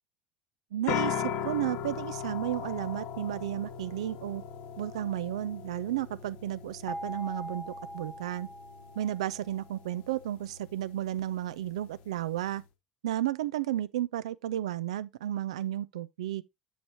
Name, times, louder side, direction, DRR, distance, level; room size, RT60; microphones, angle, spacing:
voice 1, 0.7-4.4 4.8-8.5 9.0-12.6 13.0-16.4, right 12 dB, 70° right, 0.4 m, -33 dB
sound 1, 0.9-12.6, left 8 dB, 60° left, 1.2 m, -39 dB
sound 2, 6.9-9.8, equal, 10° left, 0.6 m, -42 dB
7.5 x 7.1 x 2.7 m
figure-of-eight pair, 65°, 3 cm